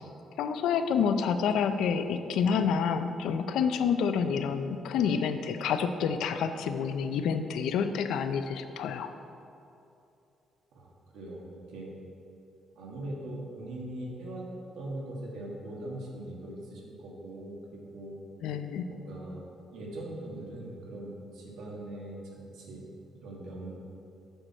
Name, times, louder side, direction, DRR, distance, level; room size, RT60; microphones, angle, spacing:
voice 1, 0.4-9.1 18.4-18.9, left 6 dB, 85° left, 9 dB, 0.4 m, -28 dB
voice 2, 10.7-11.9 12.7-14.4 14.7-18.2 18.9-19.4 19.7-22.8 23.1-23.7, right 1 dB, 90° right, -2 dB, 1.6 m, -41 dB
7.9 x 6.3 x 4.3 m, 2.7 s
cardioid pair, 165°, 0 cm